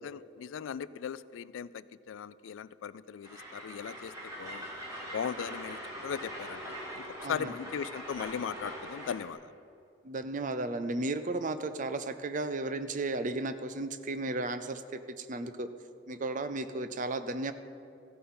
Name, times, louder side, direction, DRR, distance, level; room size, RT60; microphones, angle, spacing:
voice 1, 0.0-4.7 5.1-6.6 6.9-7.0 7.3-9.5, left 7 dB, 85° left, 18 dB, 0.3 m, -38 dB
Train, 3.2-9.3, equal, 20° right, 2.6 m, -42 dB
voice 2, 7.2-7.5 10.0-15.7 16.1-17.5, right 2 dB, 40° right, 11 dB, 0.5 m, -34 dB
14.5 x 9.1 x 4.4 m, 2.7 s
head